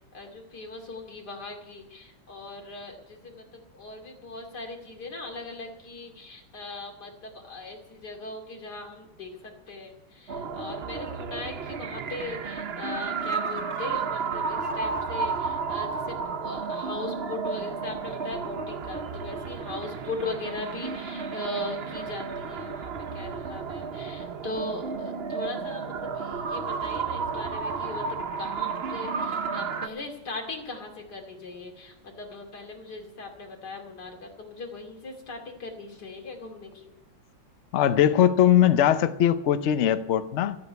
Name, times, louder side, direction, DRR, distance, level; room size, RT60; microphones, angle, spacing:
voice 1, 0.1-28.1 28.4-36.9, left 2 dB, 50° left, 2 dB, 3.1 m, -39 dB
sound 1, 10.3-29.9, right 5 dB, 60° right, 0.6 m, -32 dB
voice 2, 37.7-40.6, left 10 dB, 85° left, 11 dB, 0.6 m, -20 dB
14.5 x 8.6 x 9.4 m, 0.89 s
omnidirectional pair, 2.2 m